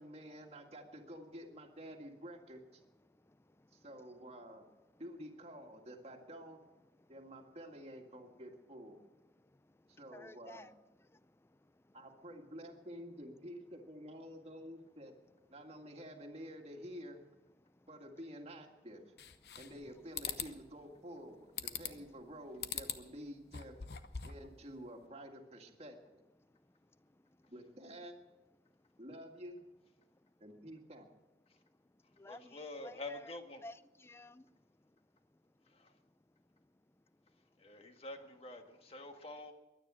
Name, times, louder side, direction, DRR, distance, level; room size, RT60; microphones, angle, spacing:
voice 1, 0.0-2.8 3.7-4.7 5.0-6.6 7.1-9.0 9.9-10.7 11.9-15.1 15.5-17.2 17.9-19.0 19.6-23.8 24.2-26.2 27.5-28.2 29.0-29.6 30.4-31.1, equal, 35° right, 2 dB, 1.9 m, -50 dB
voice 2, 3.1-3.9 7.0-7.2 9.3-12.0 17.6-17.9 19.4-19.9 21.7-22.2 26.4-27.5 28.6-28.9 30.1-30.4 31.5-33.4 33.6-35.8, left 2 dB, 15° left, 16 dB, 0.4 m, -58 dB
sound 1, 19.2-19.8 20.2-20.5 21.6-22.1 22.6-23.0 23.4-24.5, left 9 dB, 65° left, 0.9 m, -41 dB
voice 3, 32.0-33.6 35.6-36.0 37.6-39.5, left 2 dB, 35° left, 5 dB, 1.5 m, -48 dB
22.5 x 9.7 x 6.2 m, 1.1 s
head